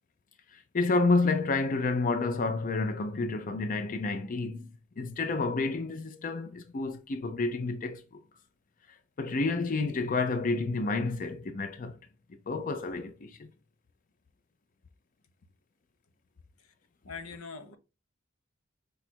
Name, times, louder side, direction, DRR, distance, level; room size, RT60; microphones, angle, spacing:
voice 1, 0.5-8.2 9.2-12.0 12.5-13.5, left 3 dB, 40° left, 0.5 m, -30 dB
voice 2, 17.0-17.8, left 5 dB, 90° left, 0.8 m, -42 dB
5.0 x 2.4 x 4.3 m
head